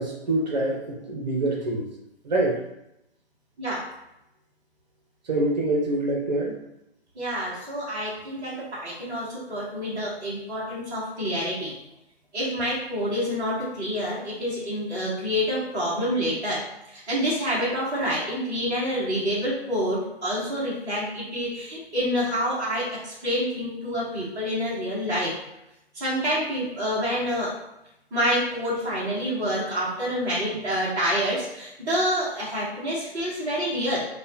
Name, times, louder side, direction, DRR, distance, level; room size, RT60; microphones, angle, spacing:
voice 1, 0.0-1.9 2.2-2.6 5.2-6.6, right 2 dB, 40° right, -1 dB, 0.8 m, -25 dB
voice 2, 7.1-11.7 12.3-25.3 25.9-27.5 28.1-34.1, equal, 10° right, -10 dB, 0.7 m, -27 dB
5.0 x 2.3 x 2.7 m, 0.85 s
figure-of-eight pair, 140°, 32 cm